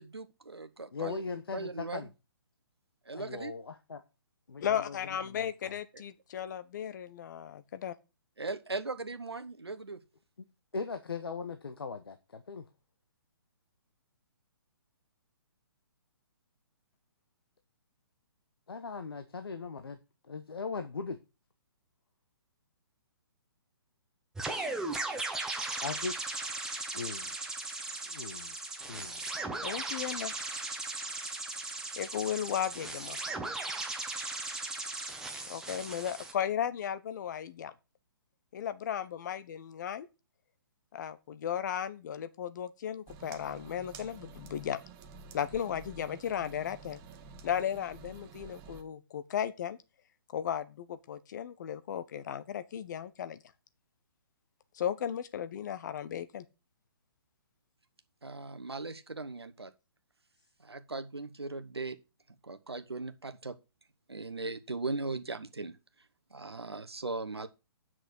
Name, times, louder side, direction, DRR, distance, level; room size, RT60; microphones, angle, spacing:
voice 1, 0.0-1.2 1.5-2.1 3.1-3.5 8.4-10.0 58.2-59.7 60.6-62.0 62.4-63.5 64.1-65.7 66.3-67.5, right 3 dB, 90° right, 1.1 m, -38 dB
voice 2, 0.9-2.1 3.1-4.0 4.5-5.0 5.3-5.7 10.7-12.6 18.7-20.0 20.3-21.2 25.8-26.1 26.9-27.3 28.1-28.5 28.9-29.2, left 4 dB, 70° left, 1.1 m, -39 dB
voice 3, 4.6-7.9 29.6-30.3 32.0-33.2 35.5-37.7 38.5-40.1 40.9-44.8 45.3-47.0 47.4-49.8 50.3-53.4 54.7-56.4, left 9 dB, 50° left, 1.0 m, -35 dB
sound 1, 24.4-36.3, right 2 dB, 5° right, 1.2 m, -37 dB
sound 2, 43.1-48.8, right 4 dB, 25° right, 1.0 m, -50 dB
8.0 x 6.2 x 6.4 m
figure-of-eight pair, 130°, 13 cm